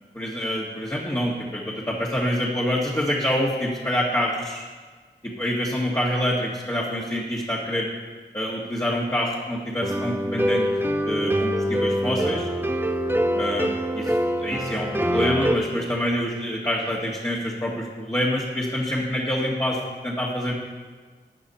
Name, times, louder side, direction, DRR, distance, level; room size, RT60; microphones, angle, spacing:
voice 1, 0.1-4.7 5.2-7.9 8.3-10.7 10.9-12.5 13.3-20.5, equal, 15° left, -4 dB, 1.9 m, -26 dB
sound 1, 9.8-15.6, equal, 10° right, 1.0 m, -24 dB
12.5 x 9.3 x 4.4 m, 1.5 s
cardioid pair, 50°, 19 cm